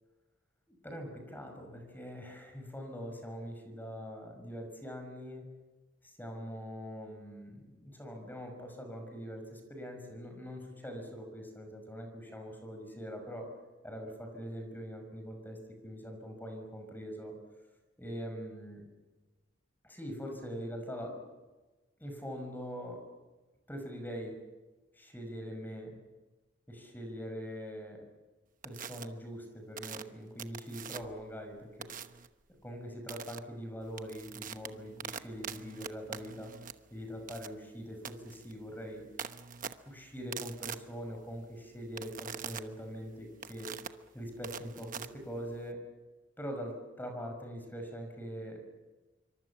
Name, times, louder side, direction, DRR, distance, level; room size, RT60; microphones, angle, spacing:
voice 1, 0.7-5.4 6.0-13.5 13.8-17.3 18.0-18.8 19.8-21.2 22.0-23.1 23.7-24.4 24.9-26.0 26.7-28.0 28.6-31.9 32.6-36.5 36.9-39.0 39.8-43.7 44.1-45.8 46.4-48.6, equal, 10° left, 4 dB, 6.0 m, -43 dB
sound 1, 28.6-29.0 29.8-31.2 31.8-32.3 33.1-33.4 33.8-45.7, right 7 dB, 45° right, 1.0 m, -44 dB
26.5 x 24.5 x 7.2 m, 1.2 s
head